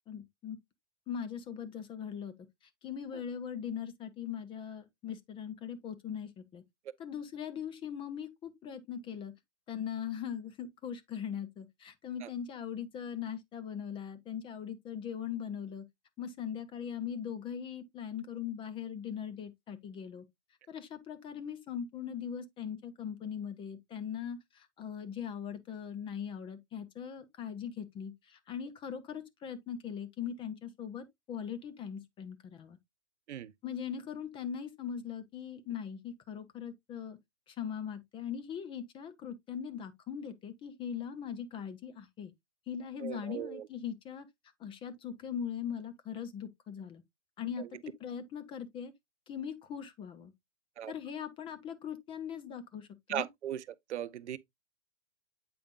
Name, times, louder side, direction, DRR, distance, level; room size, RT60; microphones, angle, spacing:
voice 1, 0.1-0.6 1.1-2.3 2.6-6.6 7.0-9.3 9.7-15.9 16.2-20.2 20.7-32.8 33.6-37.2 37.5-42.3 42.7-44.3 44.6-47.0 47.4-48.9 49.3-50.3 50.9-53.3, left 8 dB, 15° left, 0.5 m, -40 dB
voice 2, 43.0-43.7 47.6-47.7 50.8-50.9 53.1-53.6 53.9-54.4, right 11 dB, 70° right, 0.6 m, -37 dB
8.3 x 5.0 x 2.4 m
hypercardioid pair, 115°, 36 cm